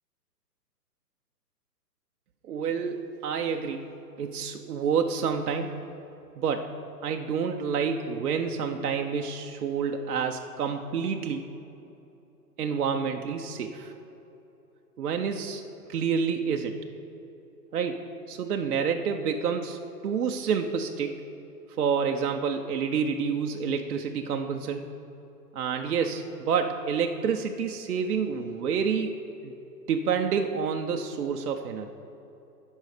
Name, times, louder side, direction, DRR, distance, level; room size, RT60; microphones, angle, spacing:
voice 1, 2.4-3.9 4.2-5.8 6.4-11.5 12.6-13.9 15.0-15.6 15.9-16.8 17.7-21.2 21.8-24.9 25.5-29.2 29.4-29.5 29.9-31.9, right 6 dB, 65° right, 4 dB, 0.8 m, -28 dB
16.0 x 5.5 x 5.0 m, 3.0 s
hypercardioid pair, 160°, 50 cm